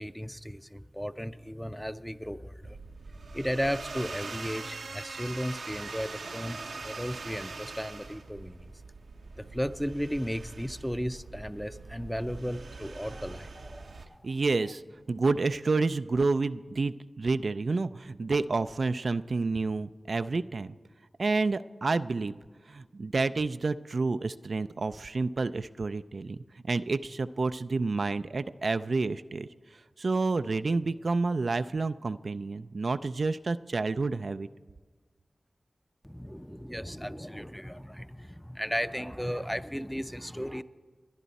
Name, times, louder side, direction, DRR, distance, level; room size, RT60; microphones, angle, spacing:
voice 1, 0.0-2.8 3.3-8.7 9.4-14.2 36.0-40.6, equal, ahead, 12 dB, 0.5 m, -35 dB
sound 1, 2.6-14.1, right 3 dB, 90° right, 0.9 m, -42 dB
voice 2, 14.2-14.8 15.1-20.8 21.2-22.4 22.7-26.4 26.6-29.5 30.0-34.5, right 3 dB, 65° right, 12 dB, 0.3 m, -29 dB
21.0 x 10.0 x 4.1 m, 1.5 s
cardioid pair, 40°, 0 cm